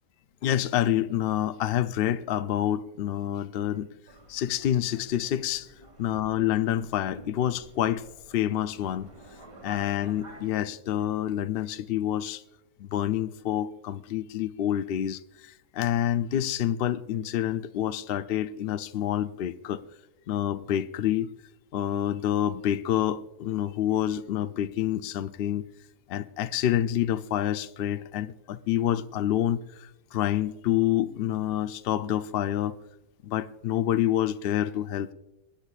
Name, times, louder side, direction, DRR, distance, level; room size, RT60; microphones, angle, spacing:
voice 1, 0.4-3.9 4.3-5.7 6.0-8.0 8.3-9.1 9.6-12.4 12.8-19.8 20.3-21.3 21.7-25.6 26.1-32.8 33.2-35.1, left 11 dB, 70° left, 0.5 m, -27 dB
Subway metro underground, 4.1-10.5, right 1 dB, 90° right, 2.6 m, -50 dB
24.5 x 9.9 x 2.4 m
omnidirectional pair, 1.5 m